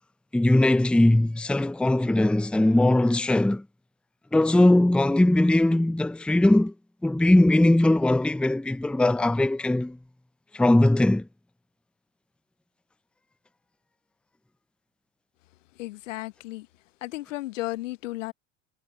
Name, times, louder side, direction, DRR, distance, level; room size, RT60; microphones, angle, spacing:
voice 1, 0.3-3.6 4.3-6.7 7.0-10.0 10.5-11.3, left 1 dB, 5° left, 0.7 m, -20 dB
voice 2, 15.8-16.7 17.0-18.3, left 18 dB, 75° left, 1.3 m, -34 dB
figure-of-eight pair, 65°, 38 cm